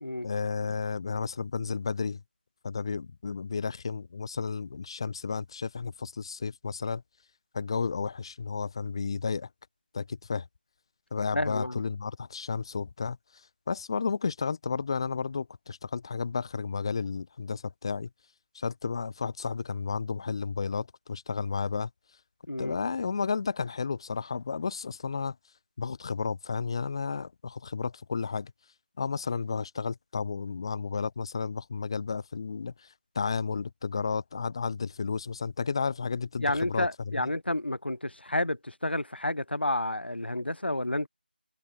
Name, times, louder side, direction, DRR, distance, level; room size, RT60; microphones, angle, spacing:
voice 1, 0.2-2.2 2.6-7.0 7.5-9.5 9.9-10.4 11.1-13.2 13.7-18.1 18.5-21.9 22.6-25.4 25.8-28.5 29.0-37.3, left 5 dB, 30° left, 0.7 m, -32 dB
voice 2, 11.3-11.8 22.5-22.8 36.4-41.1, left 1 dB, 90° left, 0.5 m, -30 dB
figure-of-eight pair, 165°, 6 cm